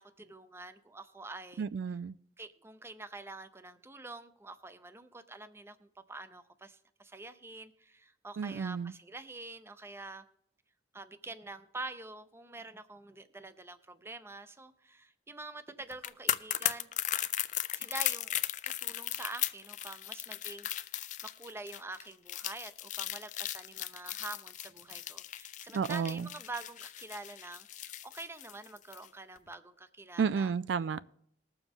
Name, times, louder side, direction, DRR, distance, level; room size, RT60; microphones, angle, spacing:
voice 1, 0.0-1.6 2.4-10.2 10.9-16.9 17.7-18.4 18.6-30.5, right 2 dB, 15° right, 0.6 m, -46 dB
voice 2, 1.6-2.2 8.4-8.9 25.7-26.3 30.2-31.0, right 6 dB, 75° right, 0.3 m, -32 dB
sound 1, 15.9-29.1 29.4-29.5, left 13 dB, 45° left, 0.4 m, -36 dB
20.0 x 7.0 x 3.6 m
head